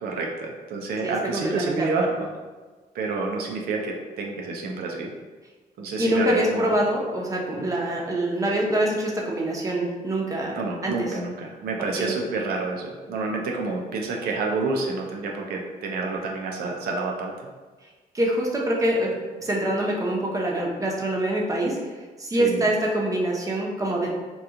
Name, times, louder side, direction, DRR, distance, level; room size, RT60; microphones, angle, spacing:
voice 1, 0.0-2.3 2.9-5.1 5.8-6.7 7.5-7.7 10.5-17.5 22.4-22.6, right 3 dB, 80° right, 0 dB, 0.5 m, -29 dB
voice 2, 1.0-2.1 6.0-11.2 12.0-12.2 18.1-19.1 19.4-21.8 22.2-24.1, right 1 dB, 20° right, -2 dB, 0.7 m, -25 dB
2.9 x 2.3 x 3.5 m, 1.3 s
cardioid pair, 100°, 16 cm